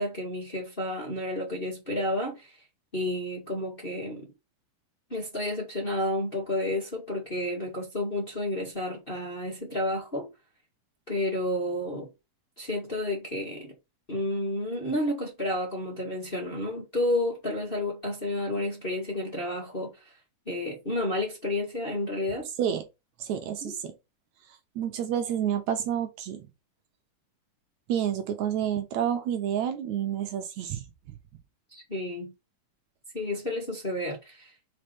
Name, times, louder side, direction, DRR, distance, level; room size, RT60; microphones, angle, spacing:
voice 1, 0.0-2.5 2.9-4.3 5.1-10.3 11.1-12.1 12.6-13.7 14.1-19.9 20.4-22.5 23.6-23.7 31.7-32.3 33.1-34.5, left 1 dB, 20° left, 1.7 m, -31 dB
voice 2, 23.2-23.9 24.8-26.4 27.9-30.8, right 9 dB, 70° right, 2.0 m, -29 dB
5.6 x 4.3 x 5.2 m
omnidirectional pair, 3.7 m